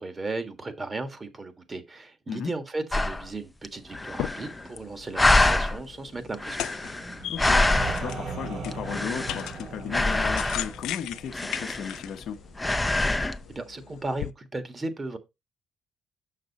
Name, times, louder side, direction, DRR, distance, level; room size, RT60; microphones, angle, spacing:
voice 1, 0.0-6.6 13.1-15.2, right 2 dB, 30° right, 1.6 m, -36 dB
sound 1, 2.9-3.3 3.6-3.7 3.9-4.8 5.2-5.8 6.3-8.2 8.7-9.6 9.9-10.8 11.3-12.2 12.6-13.4, left 2 dB, 15° left, 0.6 m, -25 dB
sound 2, 3.9-14.3, left 13 dB, 90° left, 0.4 m, -39 dB
sound 3, 6.8-12.6, right 4 dB, 70° right, 2.8 m, -39 dB
voice 2, 7.2-12.4, left 8 dB, 70° left, 0.8 m, -35 dB
6.6 x 6.1 x 4.0 m
cardioid pair, 90°, 0 cm